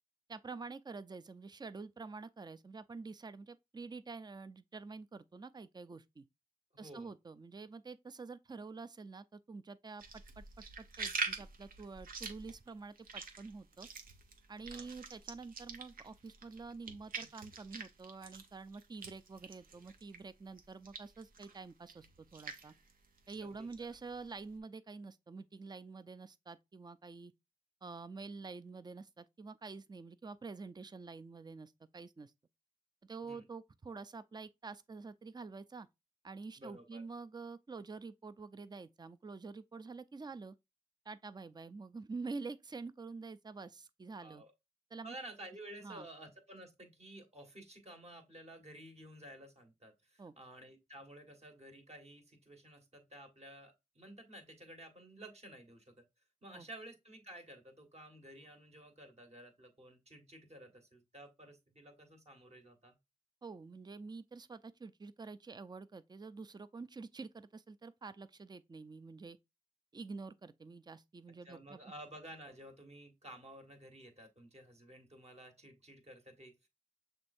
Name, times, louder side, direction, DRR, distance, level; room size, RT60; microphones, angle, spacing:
voice 1, 0.3-6.2 6.8-10.4 10.8-13.9 14.5-22.7 23.3-27.3 27.8-32.3 33.0-35.9 36.2-40.5 41.1-44.4 44.9-45.1 45.8-46.1 50.2-50.3 56.5-56.7 63.4-69.4 69.9-71.8, right 4 dB, 30° right, 0.5 m, -48 dB
voice 2, 6.7-7.1 14.7-14.9 23.4-23.7 33.2-33.4 36.6-37.0 44.2-44.5 45.0-55.9 56.4-63.0 71.4-76.7, right 1 dB, 50° right, 1.6 m, -53 dB
sound 1, 10.0-20.3 20.6-24.6, right 4 dB, 90° right, 0.7 m, -45 dB
6.0 x 3.3 x 2.6 m
cardioid pair, 40°, 14 cm